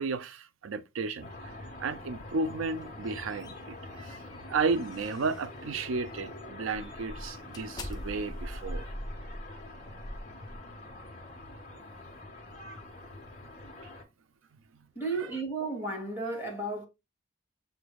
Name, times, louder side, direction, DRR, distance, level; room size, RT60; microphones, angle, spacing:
voice 1, 0.0-8.9 15.2-15.3, right 4 dB, 80° right, 0.4 m, -33 dB
sound 1, 1.2-14.0, left 2 dB, 35° left, 1.4 m, -45 dB
sound 2, 2.7-5.6 6.1-6.3 6.7-11.0, left 1 dB, 20° left, 0.6 m, -42 dB
voice 2, 14.9-16.8, right 3 dB, 10° right, 2.1 m, -33 dB
6.8 x 3.2 x 2.3 m
head